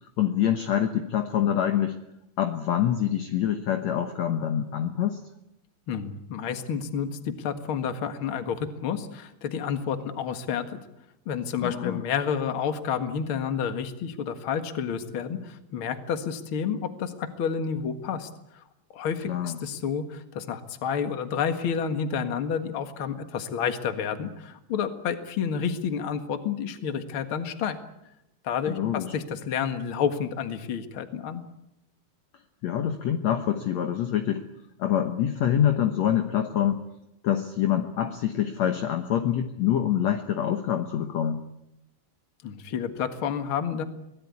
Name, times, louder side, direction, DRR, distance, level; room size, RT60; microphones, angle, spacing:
voice 1, 0.2-2.0 2.4-5.2 11.6-12.0 19.3-19.6 28.7-29.1 32.6-34.5 34.8-36.8 37.2-41.4, left 10 dB, 60° left, 6 dB, 2.1 m, -25 dB
voice 2, 5.9-10.8 11.3-18.3 18.9-27.8 28.4-31.4 42.4-43.8, left 7 dB, 45° left, 8 dB, 2.0 m, -30 dB
24.5 x 17.5 x 9.7 m, 0.87 s
omnidirectional pair, 4.1 m